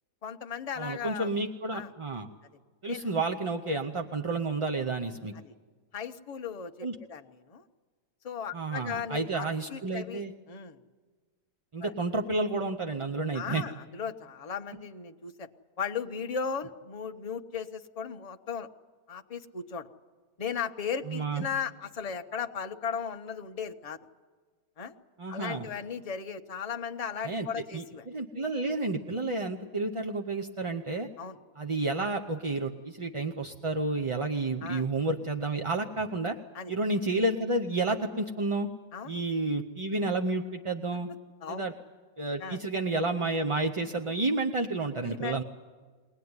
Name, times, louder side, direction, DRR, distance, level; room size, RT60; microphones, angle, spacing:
voice 1, 0.2-1.3 1.7-1.9 2.9-3.1 5.3-5.5 5.9-7.6 8.2-10.8 11.8-11.9 13.3-15.5 15.8-18.7 19.1-19.9 20.4-24.0 24.8-24.9 25.3-28.1 31.2-31.4 34.6-34.8 36.5-36.7 38.9-39.2 41.4-41.7 42.4-42.6 45.0-45.4, left 6 dB, 30° left, 5 dB, 0.8 m, -36 dB
voice 2, 0.8-2.3 2.8-5.3 6.8-7.0 8.5-10.3 11.7-13.6 21.1-21.4 25.2-25.7 27.2-27.5 27.7-31.1 31.6-36.4 36.7-38.7 39.1-41.1 41.5-41.7 42.2-45.4, right 2 dB, 30° right, 3 dB, 0.6 m, -30 dB
22.5 x 18.5 x 9.6 m, 1.5 s
omnidirectional pair, 1.5 m